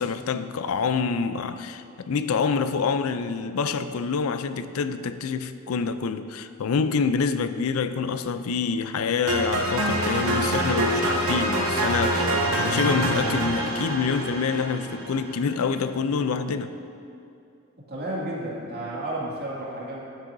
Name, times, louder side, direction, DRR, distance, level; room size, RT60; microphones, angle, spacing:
voice 1, 0.0-16.8, left 5 dB, 75° left, 0.4 m, -26 dB
sound 1, 9.3-15.4, right 1 dB, 85° right, 1.7 m, -25 dB
voice 2, 17.9-20.1, right 1 dB, 45° right, 2.1 m, -32 dB
12.0 x 10.5 x 2.6 m
head